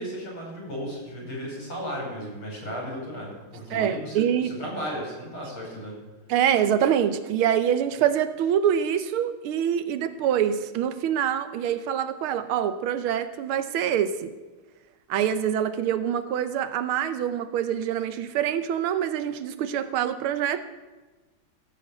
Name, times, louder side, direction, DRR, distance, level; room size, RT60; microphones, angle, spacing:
voice 1, 0.0-6.0, equal, 80° left, -2 dB, 6.2 m, -35 dB
voice 2, 3.7-4.5 6.3-14.3 15.1-20.6, right 9 dB, 85° right, 12 dB, 1.6 m, -25 dB
15.5 x 7.6 x 6.8 m, 1.2 s
omnidirectional pair, 2.3 m